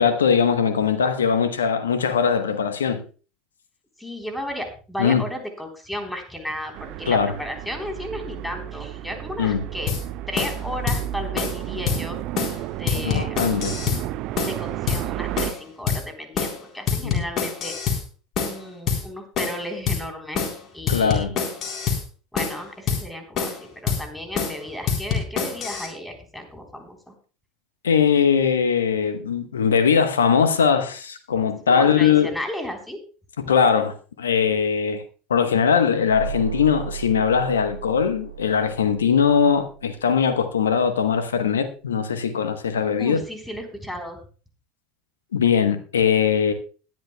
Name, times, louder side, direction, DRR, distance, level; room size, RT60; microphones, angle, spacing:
voice 1, 0.0-3.0 5.0-5.2 7.1-7.3 9.4-9.6 13.0-13.8 17.0-17.2 20.9-21.4 27.8-32.3 33.4-35.0 35.3-43.2 45.3-46.5, left 7 dB, 80° left, 1.0 m, -20 dB
voice 2, 4.0-9.9 10.3-12.2 12.7-13.4 14.4-17.8 18.4-21.3 22.3-27.1 31.7-33.0 43.0-44.2, left 1 dB, 5° left, 3.7 m, -34 dB
sound 1, 6.7-15.5, right 14 dB, 55° right, 0.6 m, -32 dB
sound 2, 9.9-10.0 10.4-10.6 10.9-11.0 11.4-11.6 11.9-12.0 12.4-12.6 12.9-14.0 14.4-14.6 14.9-15.0 15.4-15.6 15.9-16.0 16.4-16.6 16.9-18.0 18.4-18.6 18.9-19.0 19.4-19.6 19.9-20.0 20.4-20.6 20.9-22.0 22.4-22.6 22.9-23.0 23.4-23.6 23.9-24.0 24.4-24.6 24.9-25.9, left 6 dB, 45° left, 3.9 m, -25 dB
sound 3, 36.1-40.7, right 10 dB, 90° right, 1.5 m, -36 dB
21.0 x 10.5 x 2.3 m
figure-of-eight pair, 75°, 0 cm